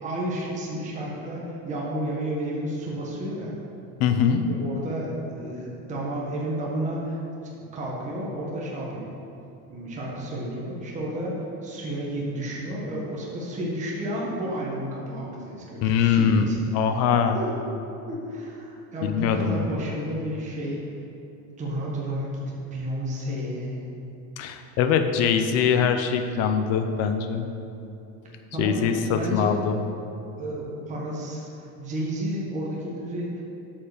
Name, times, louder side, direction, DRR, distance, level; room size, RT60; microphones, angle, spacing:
voice 1, 0.0-3.6 4.5-7.2 7.7-9.1 9.7-16.5 17.3-17.6 18.1-20.9 21.6-23.9 28.5-29.5 30.4-33.4, right 1 dB, 20° right, -4 dB, 1.3 m, -31 dB
voice 2, 4.0-4.4 15.8-16.4 16.7-17.4 19.0-19.7 24.4-27.5 28.6-29.8, left 7 dB, 40° left, 7 dB, 0.6 m, -22 dB
8.3 x 5.7 x 6.6 m, 2.8 s
cardioid pair, 170°, 38 cm